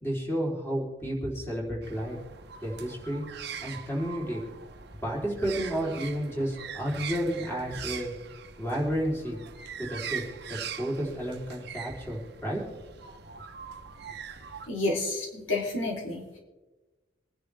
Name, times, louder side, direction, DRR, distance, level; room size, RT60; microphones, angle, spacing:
voice 1, 0.0-2.2 2.6-4.4 5.0-8.1 8.6-9.4 9.8-10.2 10.5-12.6, equal, 15° left, -3 dB, 3.8 m, -31 dB
sound 1, 1.8-14.7, right 7 dB, 55° right, 1.0 m, -42 dB
voice 2, 14.7-16.4, left 2 dB, 90° left, -1 dB, 3.5 m, -30 dB
25.5 x 10.5 x 3.5 m, 1.2 s
head